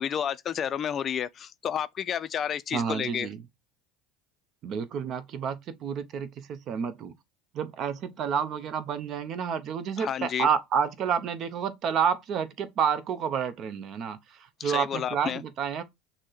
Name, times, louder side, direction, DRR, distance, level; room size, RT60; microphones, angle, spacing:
voice 1, 0.0-3.3 10.0-10.5 14.6-15.4, left 8 dB, 40° left, 0.3 m, -31 dB
voice 2, 2.7-3.4 4.6-7.1 7.5-15.8, right 7 dB, 50° right, 0.7 m, -29 dB
6.2 x 2.1 x 3.9 m
hypercardioid pair, 95°, 0 cm